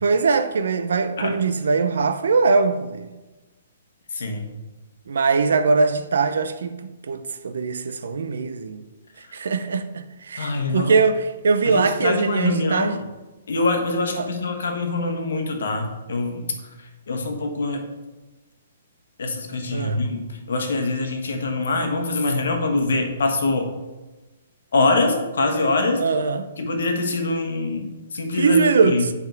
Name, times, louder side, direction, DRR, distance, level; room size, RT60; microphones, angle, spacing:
voice 1, 0.0-3.1 5.1-8.8 9.3-13.1 14.2-14.3 19.7-20.0 26.0-26.5 28.3-29.1, right 4 dB, 75° right, 0.6 m, -21 dB
voice 2, 4.1-4.5 10.4-10.9 11.6-13.0 13.5-16.5 17.1-17.8 19.2-23.7 24.7-26.0 26.6-29.1, left 3 dB, 70° left, 1.2 m, -24 dB
7.9 x 3.6 x 4.5 m
hypercardioid pair, 175°, 0 cm